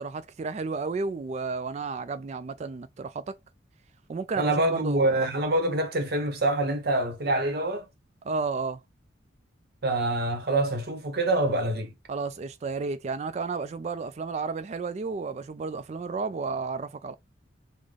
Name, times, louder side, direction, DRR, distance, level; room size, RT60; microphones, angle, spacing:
voice 1, 0.0-3.4 4.1-5.2 8.2-8.8 12.1-17.1, right 4 dB, 35° right, 0.3 m, -32 dB
voice 2, 4.4-7.9 9.8-11.9, right 2 dB, 55° right, 0.8 m, -26 dB
3.4 x 2.1 x 3.6 m
head